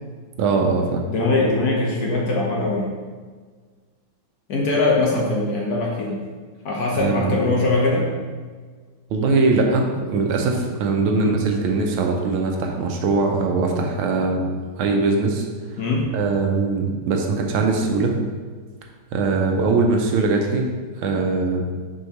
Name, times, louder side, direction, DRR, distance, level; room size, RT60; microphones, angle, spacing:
voice 1, 0.4-1.0 6.9-7.4 9.1-14.5 14.8-15.5 16.1-18.1 19.1-20.7 21.0-21.6, right 3 dB, 85° right, 2 dB, 1.6 m, -21 dB
voice 2, 1.1-2.9 4.5-6.2 6.6-8.1 11.1-11.4 15.8-16.1, left 2 dB, 60° left, -3 dB, 1.2 m, -21 dB
6.3 x 5.4 x 3.0 m, 1.5 s
omnidirectional pair, 2.3 m